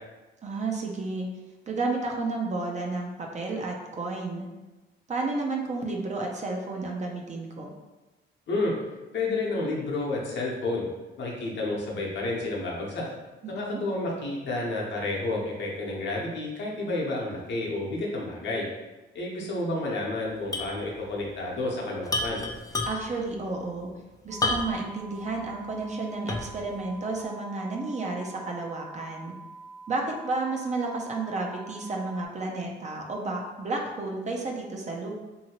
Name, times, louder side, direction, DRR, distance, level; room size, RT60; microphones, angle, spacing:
voice 1, 0.4-1.3 1.7-4.5 5.1-7.7 13.4-13.8 22.9-23.9 24.2-29.3 29.9-35.2, right 3 dB, 35° right, 0 dB, 0.5 m, -31 dB
voice 2, 9.1-10.9 11.2-13.1 13.5-18.6 19.1-22.4, left 2 dB, 65° left, -3 dB, 0.8 m, -30 dB
sound 1, 20.5-20.8 21.1-21.2 22.1-23.2 24.4-24.9 25.4-25.5 26.3-26.7, left 2 dB, 20° left, 0.4 m, -29 dB
sound 2, 24.3-32.3, right 4 dB, 70° right, 0.8 m, -46 dB
2.7 x 2.7 x 2.9 m, 1.1 s
cardioid pair, 90°, 20 cm